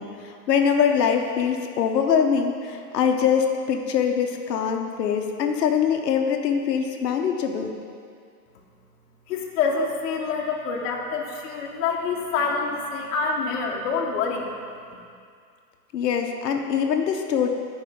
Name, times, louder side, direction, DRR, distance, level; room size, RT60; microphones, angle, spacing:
voice 1, 0.0-7.7 15.9-17.5, left 7 dB, 85° left, 4 dB, 1.0 m, -23 dB
voice 2, 9.3-14.5, left 4 dB, 55° left, -1 dB, 1.3 m, -26 dB
9.3 x 5.3 x 5.1 m, 2.3 s
hypercardioid pair, 140°, 48 cm